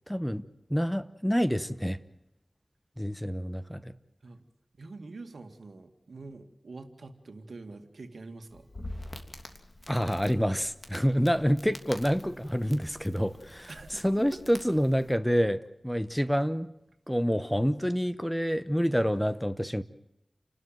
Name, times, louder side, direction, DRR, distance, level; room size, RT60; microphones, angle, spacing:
voice 1, 0.1-0.4 0.7-2.0 3.0-3.9 9.9-13.7 14.0-16.7 17.1-19.8, equal, 5° left, 13 dB, 1.1 m, -27 dB
voice 2, 4.8-8.7 13.7-14.4, right 3 dB, 80° right, 7 dB, 2.2 m, -45 dB
Crackle, 8.5-15.2, left 1 dB, 45° left, 3.1 m, -46 dB
29.5 x 12.5 x 9.2 m, 0.85 s
wide cardioid pair, 60°, 0 cm